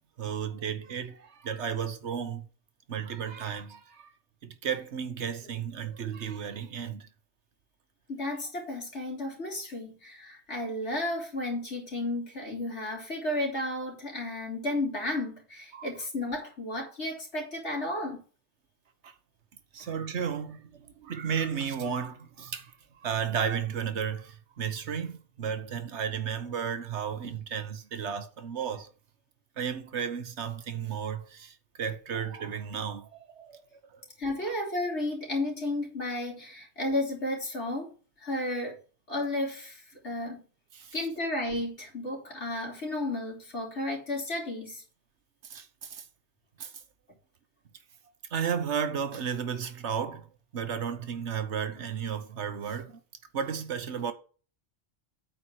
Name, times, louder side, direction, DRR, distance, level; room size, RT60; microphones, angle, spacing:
voice 1, 0.2-2.4 2.9-4.1 4.4-7.1 15.7-15.9 19.0-19.1 19.7-22.7 23.0-28.9 29.6-33.6 33.9-34.0 40.7-40.9 45.4-46.0 46.6-46.7 48.3-50.3 50.5-53.0 53.3-54.1, right 7 dB, 90° right, 1.3 m, -33 dB
voice 2, 8.1-18.2 34.2-37.9 38.2-38.8 39.1-40.4 40.9-44.8, left 1 dB, 85° left, 3.5 m, -33 dB
8.7 x 4.6 x 6.1 m
omnidirectional pair, 1.1 m